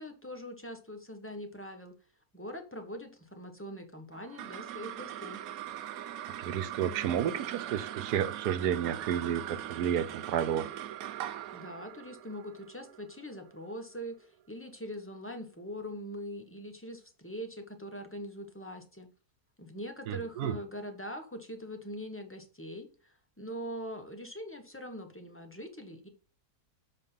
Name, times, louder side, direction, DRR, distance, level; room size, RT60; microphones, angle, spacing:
voice 1, 0.0-1.9 2.3-5.4 11.5-19.1 19.6-26.1, equal, 10° left, 6 dB, 1.0 m, -42 dB
sound 1, 4.1-14.7, right 12 dB, 70° right, 1.0 m, -41 dB
voice 2, 6.4-10.7 20.1-20.5, right 9 dB, 90° right, 13 dB, 1.3 m, -31 dB
7.2 x 4.4 x 5.7 m, 0.36 s
omnidirectional pair, 1.7 m